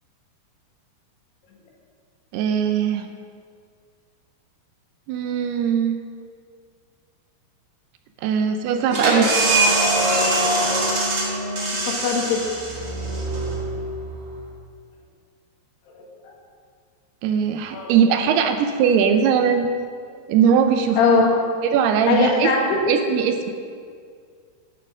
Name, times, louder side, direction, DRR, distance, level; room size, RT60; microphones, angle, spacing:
voice 1, 2.3-3.1 5.1-6.0 8.2-9.3 17.2-19.7 20.3-21.2 21.6-22.5 22.9-23.5, right 7 dB, 80° right, 6 dB, 2.6 m, -20 dB
sound 1, 8.9-14.3, right 2 dB, 45° right, 1.4 m, -22 dB
voice 2, 11.9-12.6 16.0-16.3 17.7-18.0 21.0-21.4 22.1-22.8, left 4 dB, 75° left, 0 dB, 3.6 m, -21 dB
12.0 x 8.1 x 6.1 m, 2.1 s
omnidirectional pair, 4.9 m